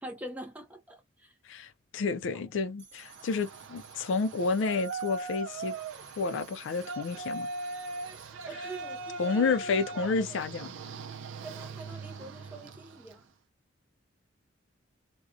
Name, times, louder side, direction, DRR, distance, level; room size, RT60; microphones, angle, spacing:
voice 1, 0.0-1.4 8.5-10.4 11.4-13.3, right 1 dB, 10° right, 0.4 m, -45 dB
voice 2, 1.5-5.7 6.2-7.5 9.2-10.7, left 4 dB, 75° left, 0.4 m, -30 dB
sound 1, 2.8-8.3, right 5 dB, 45° right, 1.1 m, -54 dB
Yell, 3.0-13.2, right 3 dB, 70° right, 0.4 m, -40 dB
2.5 x 2.1 x 2.4 m
head